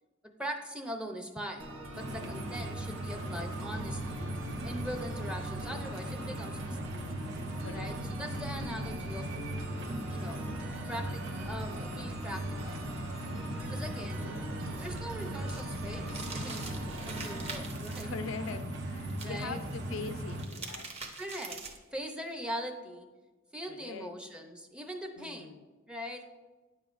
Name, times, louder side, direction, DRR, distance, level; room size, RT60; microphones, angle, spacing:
voice 1, 0.4-4.2 4.6-7.0 7.7-9.3 10.1-10.5 10.9-12.8 13.7-14.3 14.8-18.2 19.2-19.6 21.2-21.6 21.9-23.1 23.5-25.6 25.9-26.2, equal, 5° right, 4 dB, 0.5 m, -41 dB
sound 1, 1.6-17.6, right 1 dB, 90° right, 1.1 m, -44 dB
sound 2, 1.9-20.5, right 1 dB, 65° right, 0.9 m, -38 dB
voice 2, 7.6-7.9 18.0-20.9 23.7-24.1 25.2-25.6, left 4 dB, 70° left, 9 dB, 0.4 m, -42 dB
sound 3, 14.6-18.0 19.1-19.7 20.2-21.9, right 4 dB, 30° right, 0.9 m, -44 dB
9.6 x 7.1 x 2.5 m, 1.3 s
head